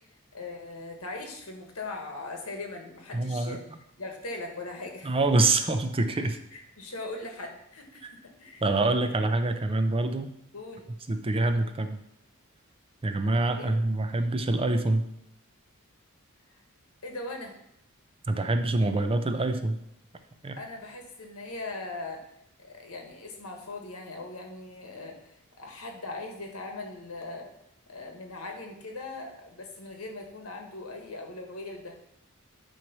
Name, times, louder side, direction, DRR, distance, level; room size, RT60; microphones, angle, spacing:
voice 1, 0.3-3.6 4.0-5.4 6.5-8.6 10.5-10.9 13.6-13.7 17.0-17.5 20.6-22.3 22.6-27.5 27.9-32.0, left 2 dB, 85° left, 3 dB, 1.5 m, -40 dB
voice 2, 3.1-3.6 5.0-6.4 8.6-10.3 11.1-12.0 13.0-15.0 18.3-19.8 20.4-20.6, right 2 dB, 25° right, 7 dB, 0.6 m, -26 dB
9.0 x 3.1 x 5.9 m, 0.78 s
head